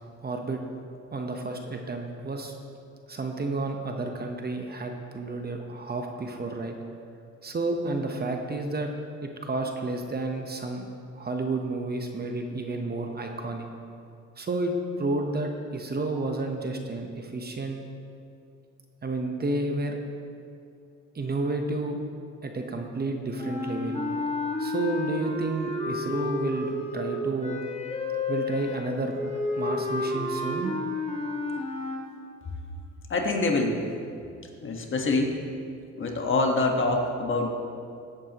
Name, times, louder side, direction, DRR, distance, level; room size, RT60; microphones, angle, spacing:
voice 1, 0.2-0.6 1.1-2.5 3.1-6.7 7.4-8.9 9.2-10.9 11.2-13.7 14.4-17.8 19.0-20.0 21.1-22.0 22.4-24.0 24.6-27.6 28.3-29.2 29.6-30.7, right 2 dB, 30° right, 3 dB, 1.0 m, -31 dB
sound 1, 23.3-32.0, left 3 dB, 20° left, 1.7 m, -31 dB
voice 2, 33.1-33.8 34.6-35.4 35.9-37.5, left 2 dB, 40° left, 1 dB, 1.4 m, -25 dB
14.5 x 8.6 x 3.0 m, 2.5 s
cardioid pair, 90°, 30 cm